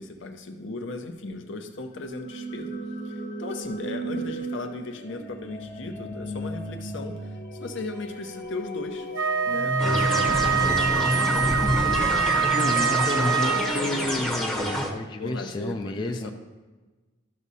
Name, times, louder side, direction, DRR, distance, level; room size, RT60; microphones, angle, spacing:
voice 1, 0.0-9.1 9.4-12.3 12.9-13.8 15.2-16.3, left 2 dB, 65° left, 6 dB, 0.7 m, -37 dB
sound 1, 1.9-13.8, equal, 40° left, 1.0 m, -34 dB
Wind instrument woodwind instrument, 9.1-14.0, right 7 dB, 70° right, 0.5 m, -25 dB
sound 2, 9.8-14.9, left 1 dB, 5° left, 0.8 m, -27 dB
voice 2, 12.6-16.3, left 2 dB, 25° left, 4 dB, 0.4 m, -31 dB
12.0 x 6.2 x 2.7 m, 1.2 s
head